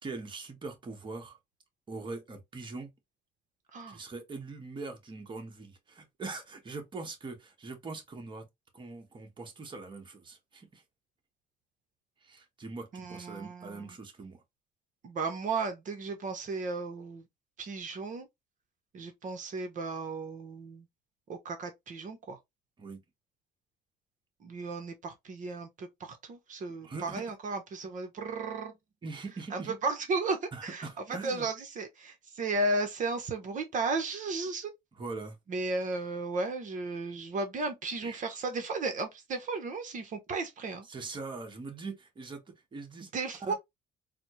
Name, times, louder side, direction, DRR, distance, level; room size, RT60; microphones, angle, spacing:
voice 1, 0.0-1.4 1.9-2.9 3.9-8.5 8.7-10.8 12.2-14.4 22.8-23.0 26.8-27.2 29.0-29.7 30.5-31.5 35.0-35.4 38.0-38.2 40.8-43.1 43.4-43.5, right 3 dB, 30° right, 1.1 m, -42 dB
voice 2, 12.9-13.9 15.0-17.3 17.6-18.3 18.9-20.9 21.3-22.4 24.4-28.7 29.5-30.9 31.2-34.7 35.5-40.9 43.1-43.5, right 3 dB, 50° right, 0.8 m, -34 dB
4.1 x 2.1 x 3.0 m
cardioid pair, 110°, 17 cm